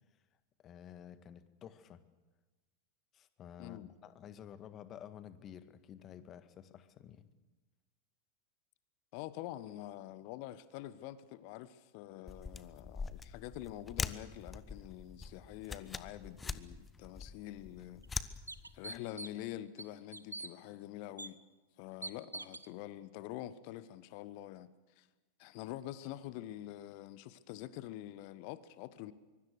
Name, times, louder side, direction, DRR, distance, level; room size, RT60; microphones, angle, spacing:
voice 1, 0.6-2.0 3.1-7.3, left 9 dB, 30° left, 1.6 m, -52 dB
voice 2, 3.6-3.9 9.1-18.4 18.7-21.4 21.8-25.1 25.4-29.1, left 14 dB, 45° left, 1.1 m, -46 dB
sound 1, 12.3-19.0, left 4 dB, 15° left, 1.1 m, -43 dB
sound 2, 17.4-17.5 18.0-18.1 18.5-19.5 19.8-20.5 21.2-21.3 22.0-22.7, right 2 dB, 80° right, 0.9 m, -44 dB
24.5 x 23.5 x 6.6 m
figure-of-eight pair, 90°, 0 cm